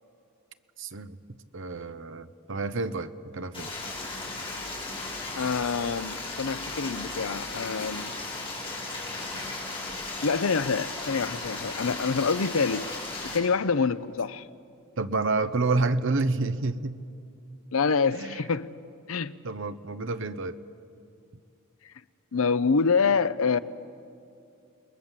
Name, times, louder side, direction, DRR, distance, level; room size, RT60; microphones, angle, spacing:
voice 1, 0.8-1.2 1.5-3.7 8.0-8.1 15.0-17.0 18.1-18.4 19.4-20.6, right 3 dB, 60° right, 0.9 m, -29 dB
Stream, 3.5-13.4, left 2 dB, 25° left, 5.9 m, -36 dB
voice 2, 5.4-8.1 10.2-12.9 13.2-14.5 17.7-18.7 19.1-19.4 22.3-23.6, left 5 dB, 75° left, 0.7 m, -26 dB
29.0 x 20.5 x 7.5 m
head